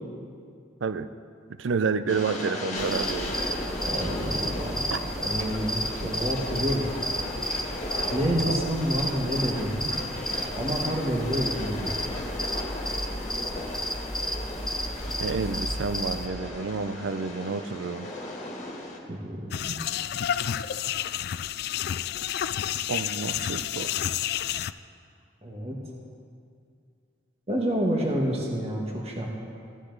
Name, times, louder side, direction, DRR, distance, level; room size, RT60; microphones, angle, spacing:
voice 1, 1.6-3.4 4.9-5.0 8.5-8.7 15.2-18.1 22.9-24.1, right 5 dB, 85° right, 12 dB, 0.5 m, -29 dB
Train, 2.1-19.0, left 1 dB, 40° left, 1.8 m, -36 dB
sound 1, 2.8-16.3, equal, 5° left, 0.6 m, -32 dB
voice 2, 3.8-6.8 8.1-9.9 10.5-11.9 19.1-19.8 25.4-25.8 27.5-29.3, equal, 35° right, -2 dB, 1.4 m, -29 dB
sound 2, 19.5-24.7, left 10 dB, 55° left, 0.3 m, -30 dB
15.5 x 13.0 x 4.0 m, 2.4 s
head